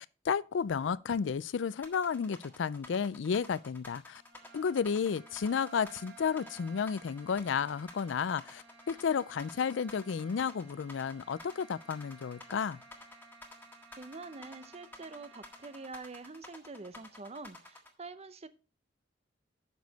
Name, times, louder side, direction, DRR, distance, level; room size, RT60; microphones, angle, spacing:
voice 1, 0.0-4.2 4.5-12.8, left 6 dB, 80° left, 0.4 m, -32 dB
sound 1, 1.8-17.9, left 2 dB, 10° left, 1.6 m, -51 dB
sound 2, 4.1-16.0, right 4 dB, 90° right, 4.6 m, -56 dB
voice 2, 14.0-18.5, right 3 dB, 35° right, 0.7 m, -46 dB
9.5 x 6.3 x 4.1 m
head